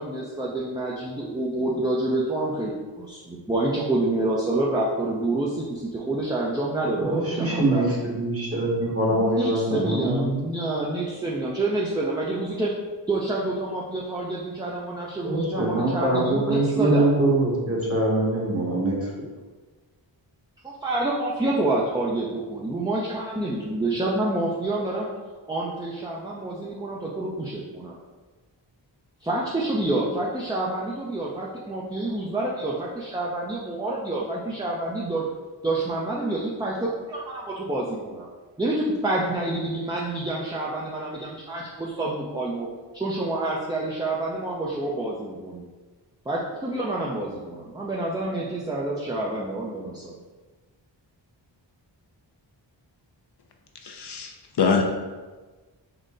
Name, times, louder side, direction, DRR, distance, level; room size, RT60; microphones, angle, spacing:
voice 1, 0.0-2.7 3.0-7.8 9.1-12.7 13.1-17.1 20.6-25.1 25.5-27.9 29.2-35.2 35.6-38.3 38.6-42.7 42.9-45.7 46.3-50.2, right 2 dB, 10° right, -4 dB, 0.5 m, -28 dB
voice 2, 7.1-10.4 15.2-19.1, right 2 dB, 30° right, -3 dB, 1.2 m, -23 dB
voice 3, 53.8-54.3 54.6-54.8, left 5 dB, 60° left, 3 dB, 0.5 m, -23 dB
3.8 x 2.1 x 3.7 m, 1.3 s
cardioid pair, 45°, 47 cm